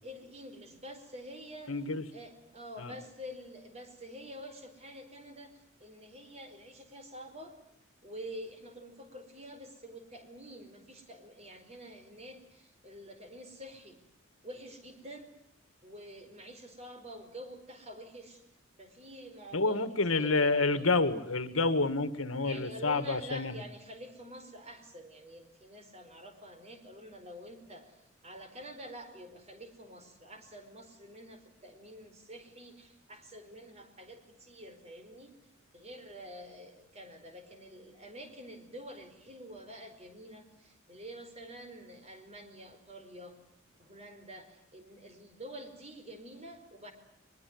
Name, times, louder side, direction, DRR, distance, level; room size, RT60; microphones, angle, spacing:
voice 1, 0.0-1.7 2.1-5.5 5.8-7.5 8.0-14.0 14.4-15.3 15.8-18.4 18.8-19.8 20.1-21.0 22.4-27.9 28.2-35.3 35.7-43.4 43.8-46.9, equal, 30° right, 7 dB, 4.6 m, -48 dB
voice 2, 1.7-2.0 2.8-2.9 19.5-23.6, left 3 dB, 80° left, 12 dB, 1.8 m, -29 dB
22.5 x 22.5 x 9.6 m, 0.77 s
head